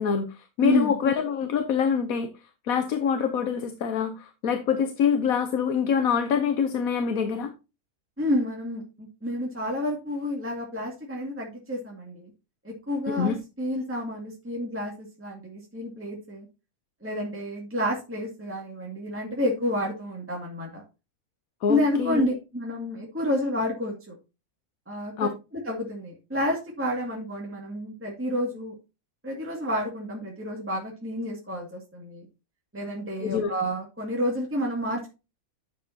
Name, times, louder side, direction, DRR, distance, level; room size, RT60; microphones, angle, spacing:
voice 1, 0.0-2.3 2.6-7.5 13.1-13.3 21.6-22.2 25.2-25.3 33.2-33.5, left 7 dB, 75° left, 1.3 m, -25 dB
voice 2, 0.6-1.0 8.2-12.3 12.6-16.5 17.0-20.8 21.7-24.2 24.9-28.7 29.2-32.3 32.7-35.1, left 1 dB, 10° right, 2.1 m, -29 dB
10.0 x 7.3 x 2.8 m
omnidirectional pair, 1.5 m